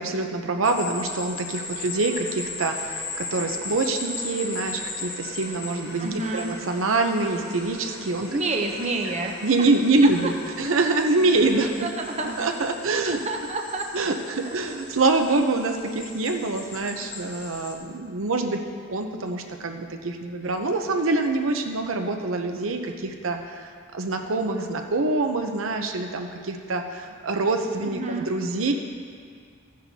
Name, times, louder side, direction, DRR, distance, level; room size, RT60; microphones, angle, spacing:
voice 1, 0.0-8.4 9.4-11.9 12.4-13.2 13.9-18.6 18.9-28.7, right 3 dB, 75° right, 4 dB, 0.7 m, -25 dB
sound 1, 0.6-17.8, left 3 dB, 55° left, 1.5 m, -38 dB
sound 2, 1.6-9.9, left 1 dB, 80° left, 2.2 m, -45 dB
voice 2, 6.0-6.5 8.3-9.3 11.8-12.3 13.0-13.9 14.5-14.6 27.9-28.3, right 2 dB, 30° right, 2 dB, 0.7 m, -29 dB
15.0 x 10.5 x 2.8 m, 2.2 s
head